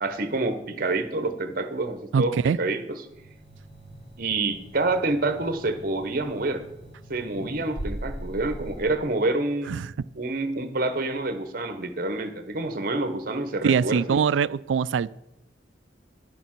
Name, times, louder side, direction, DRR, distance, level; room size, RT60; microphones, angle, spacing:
voice 1, 0.0-3.0 4.2-6.6 7.1-9.8 10.1-14.2, right 2 dB, 50° right, 9 dB, 1.0 m, -27 dB
voice 2, 2.1-2.6 9.7-9.9 13.6-15.2, right 6 dB, 90° right, 19 dB, 0.3 m, -23 dB
sound 1, 3.1-8.8, right 1 dB, 40° left, 4.0 m, -40 dB
10.5 x 6.9 x 6.0 m, 0.86 s
head